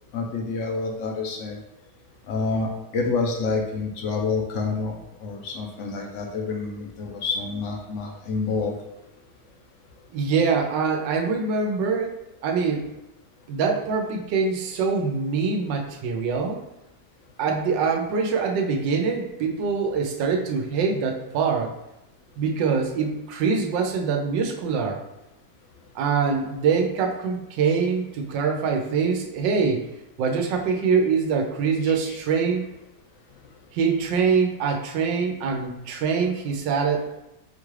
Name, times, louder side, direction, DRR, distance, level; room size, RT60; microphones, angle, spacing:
voice 1, 0.1-1.6 2.3-8.7 32.1-32.2, left 4 dB, 65° left, 0 dB, 0.7 m, -28 dB
voice 2, 10.1-12.2 12.4-12.9 13.5-16.6 17.4-21.7 22.4-25.0 25.9-29.8 30.2-32.6 33.7-37.0, right 5 dB, 90° right, 3 dB, 1.3 m, -24 dB
4.5 x 2.4 x 3.1 m, 0.89 s
omnidirectional pair, 1.9 m